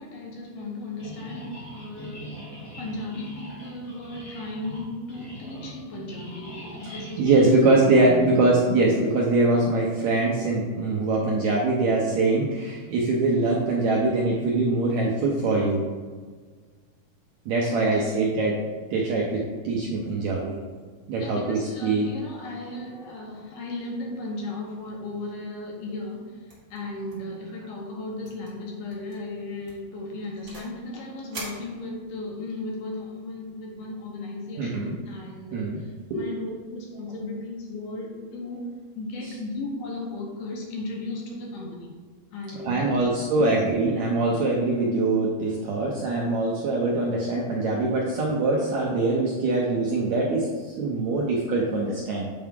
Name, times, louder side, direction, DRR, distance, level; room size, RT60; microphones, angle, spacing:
voice 1, 0.0-2.5 2.8-8.5 17.6-18.3 21.2-26.4 26.7-41.9 42.3-43.0 43.4-43.5, left 2 dB, 70° left, -1 dB, 2.5 m, -36 dB
sound 1, 1.0-8.4, equal, 25° left, 1.8 m, -42 dB
voice 2, 6.9-15.8 17.5-18.5 18.9-20.6 21.1-22.1 34.6-35.0 35.5-35.8 36.1-36.2 39.2-39.3 42.5-52.3, right 2 dB, 75° right, -3 dB, 1.7 m, -23 dB
sound 2, 26.5-26.8 27.1-27.4 27.6-27.7 28.2-28.5 28.9-29.2 29.7-30.8 31.3-32.3, right 2 dB, 50° right, 1.2 m, -42 dB
7.8 x 4.6 x 3.6 m, 1.5 s
omnidirectional pair, 4.1 m